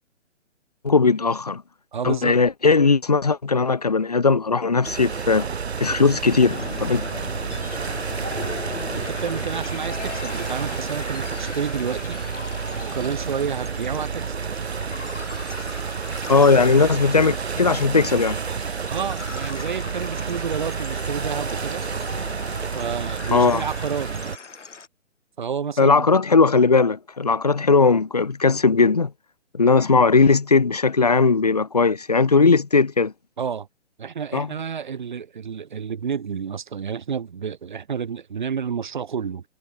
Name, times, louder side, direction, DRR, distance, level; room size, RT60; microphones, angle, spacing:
voice 1, 0.8-1.6 2.0-5.5 5.8-7.0 16.3-18.4 23.3-23.6 25.8-29.1 29.5-33.1 34.3-34.5, left 4 dB, 35° left, 0.7 m, -18 dB
voice 2, 1.9-2.4 8.3-8.7 8.9-12.2 12.8-14.3 18.9-21.8 22.7-24.1 25.4-26.1 33.4-33.7 34.0-39.4, right 7 dB, 40° right, 5.9 m, -30 dB
sound 1, 4.8-24.4, right 6 dB, 60° right, 2.3 m, -30 dB
sound 2, 6.5-24.9, left 5 dB, 75° left, 6.5 m, -38 dB
hypercardioid pair, 180°, 37 cm